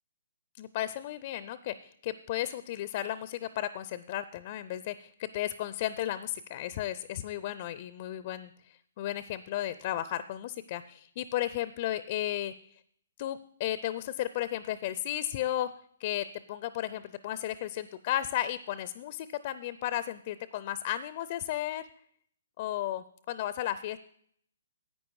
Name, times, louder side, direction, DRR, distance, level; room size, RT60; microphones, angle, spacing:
voice 1, 0.6-12.5 13.2-15.7 16.0-21.8 22.6-24.0, left 13 dB, 40° left, 15 dB, 0.5 m, -34 dB
10.5 x 8.8 x 4.8 m, 0.65 s
hypercardioid pair, 140°, 0 cm